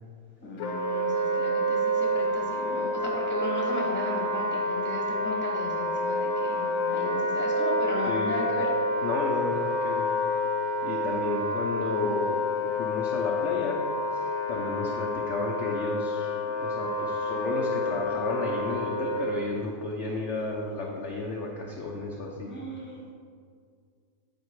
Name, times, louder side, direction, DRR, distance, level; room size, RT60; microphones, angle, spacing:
voice 1, 0.4-8.7 22.4-23.1, left 2 dB, 10° left, -2 dB, 1.0 m, -36 dB
Wind instrument woodwind instrument, 0.6-19.2, left 1 dB, 80° left, 1.4 m, -28 dB
voice 2, 8.1-8.4 9.0-10.1 10.8-13.8 14.1-22.6, left 3 dB, 65° left, -1 dB, 0.7 m, -32 dB
8.7 x 4.5 x 4.7 m, 2.1 s
omnidirectional pair, 2.0 m